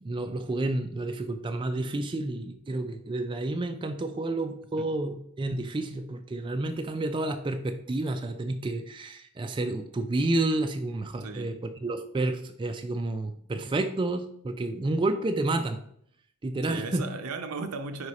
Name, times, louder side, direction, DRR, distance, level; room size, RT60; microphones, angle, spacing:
voice 1, 0.0-15.8 16.4-17.1, right 2 dB, 20° right, 7 dB, 0.3 m, -30 dB
voice 2, 11.2-11.6 16.6-18.1, right 4 dB, 75° right, 7 dB, 0.7 m, -36 dB
4.9 x 4.8 x 4.2 m, 0.67 s
head